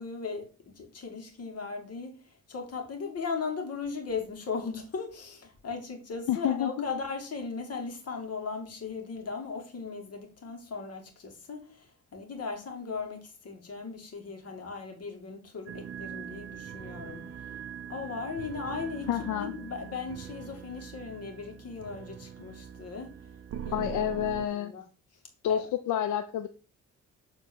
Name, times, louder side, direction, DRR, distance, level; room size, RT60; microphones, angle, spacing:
voice 1, 0.0-2.2 2.5-11.8 12.1-17.3 17.9-23.1 23.6-24.2 24.5-24.8 25.5-25.6, left 4 dB, 55° left, 2.5 m, -37 dB
voice 2, 6.3-6.7 19.1-19.5 23.7-24.7 25.4-26.5, left 10 dB, 80° left, 0.6 m, -29 dB
sound 1, 15.7-24.5, right 8 dB, 50° right, 0.8 m, -42 dB
7.6 x 3.9 x 4.5 m
cardioid pair, 90°, 30 cm